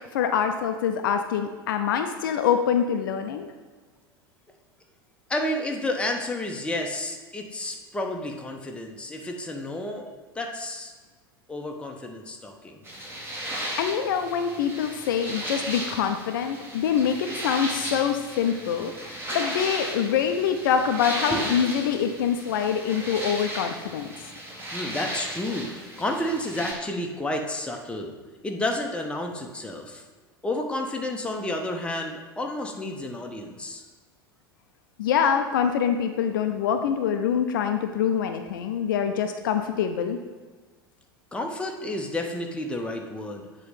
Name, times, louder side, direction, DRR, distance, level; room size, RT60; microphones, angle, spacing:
voice 1, 0.1-3.5 13.8-18.9 19.3-24.1 35.0-40.2, left 8 dB, 60° left, 7 dB, 0.5 m, -25 dB
voice 2, 5.3-10.1 10.3-10.9 11.5-12.8 21.3-21.5 24.7-28.1 28.4-30.0 30.4-33.8 41.3-43.5, left 1 dB, 10° left, 2 dB, 0.8 m, -31 dB
sound 1, 12.8-26.7, right 1 dB, 20° right, 1.6 m, -35 dB
7.9 x 3.1 x 5.1 m, 1.4 s
figure-of-eight pair, 80°, 13 cm